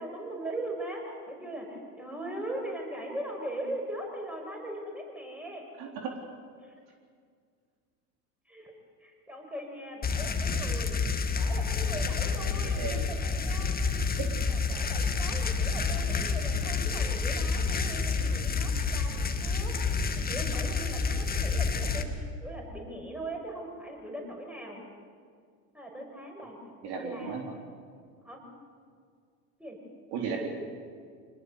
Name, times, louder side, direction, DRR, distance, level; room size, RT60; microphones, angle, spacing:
voice 1, 0.0-5.7 6.6-6.7 8.5-8.7 9.0-11.0 11.3-14.2 14.5-24.8 25.7-26.6 26.8-27.3 28.2-28.4 29.6-29.8, right 1 dB, 5° right, 0 dB, 6.4 m, -40 dB
voice 2, 5.8-6.1 12.4-13.0 14.2-14.3 26.8-27.4 30.1-30.5, right 6 dB, 50° right, 1 dB, 3.9 m, -35 dB
sound 1, 10.0-22.0, left 5 dB, 20° left, 2.0 m, -29 dB
25.0 x 19.5 x 8.1 m, 2.1 s
hypercardioid pair, 95°, 50 cm